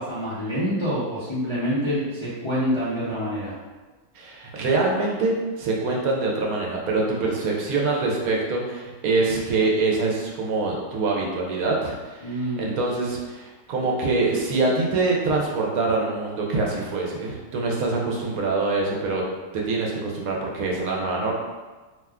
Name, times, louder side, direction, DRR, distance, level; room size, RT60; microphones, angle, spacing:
voice 1, 0.0-3.6 12.2-12.7, equal, 45° left, -11 dB, 0.3 m, -26 dB
voice 2, 4.1-19.2 19.5-21.3, right 3 dB, 70° right, -2 dB, 1.0 m, -24 dB
2.8 x 2.2 x 3.5 m, 1.3 s
omnidirectional pair, 1.6 m